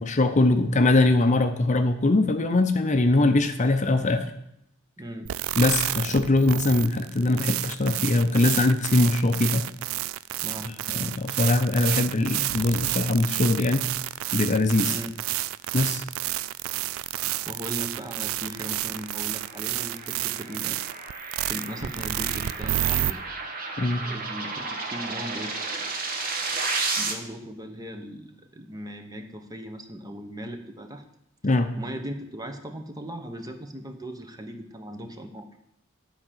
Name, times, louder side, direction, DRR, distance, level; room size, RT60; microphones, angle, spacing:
voice 1, 0.0-4.3 5.6-9.7 10.9-13.8 14.3-14.9 15.7-16.0 23.8-24.0 31.4-31.7, left 2 dB, 35° left, 8 dB, 0.7 m, -22 dB
voice 2, 5.0-5.3 10.4-10.7 14.8-15.1 17.4-20.8 21.4-23.2 24.0-25.6 27.0-31.0 31.8-35.5, equal, 20° right, 6 dB, 1.0 m, -38 dB
sound 1, 5.3-23.1, right 14 dB, 75° right, 0.3 m, -30 dB
sound 2, 18.4-27.1, right 3 dB, 45° right, 1.3 m, -33 dB
10.5 x 5.0 x 7.4 m, 0.77 s
head